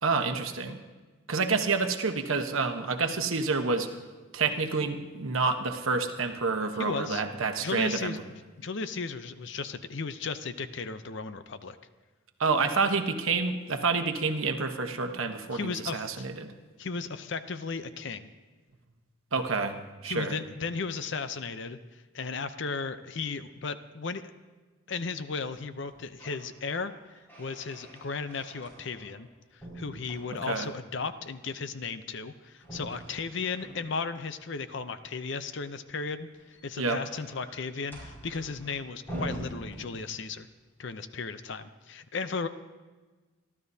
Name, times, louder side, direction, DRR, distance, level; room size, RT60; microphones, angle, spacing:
voice 1, 0.0-0.8 1.3-3.9 4.3-8.1 12.4-16.5 19.3-19.8 20.0-20.4 30.5-30.7 36.8-37.0, right 4 dB, 75° right, 6 dB, 1.1 m, -28 dB
voice 2, 6.8-7.2 7.6-8.2 8.6-11.8 15.5-16.1 16.8-18.3 20.0-24.2 24.9-26.9 27.4-40.5 40.8-42.5, left 4 dB, 55° left, 11 dB, 0.6 m, -35 dB
sound 1, 25.8-26.5 26.8-29.3 29.6-30.8 32.6-34.2 36.2-40.4, right 1 dB, 10° left, 5.2 m, -44 dB
27.0 x 12.5 x 2.8 m, 1.3 s
head